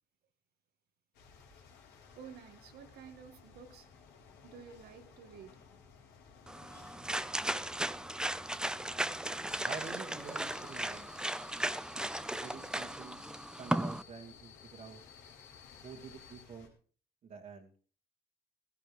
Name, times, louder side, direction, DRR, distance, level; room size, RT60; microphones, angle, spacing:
sound 1, 1.1-16.7, left 5 dB, 90° left, 4.2 m, -58 dB
voice 1, 2.2-3.9 4.4-5.6 6.7-7.0, right 7 dB, 70° right, 8 dB, 1.9 m, -52 dB
sound 2, 6.5-14.0, right 1 dB, 5° right, 0.5 m, -36 dB
sound 3, 9.5-16.4, left 8 dB, 50° left, 3.5 m, -57 dB
voice 2, 9.6-11.1 12.3-13.2 13.6-15.0 15.8-16.7 17.2-17.7, right 5 dB, 50° right, -3 dB, 2.2 m, -48 dB
16.0 x 15.0 x 3.4 m, 0.42 s
cardioid pair, 110°, 17 cm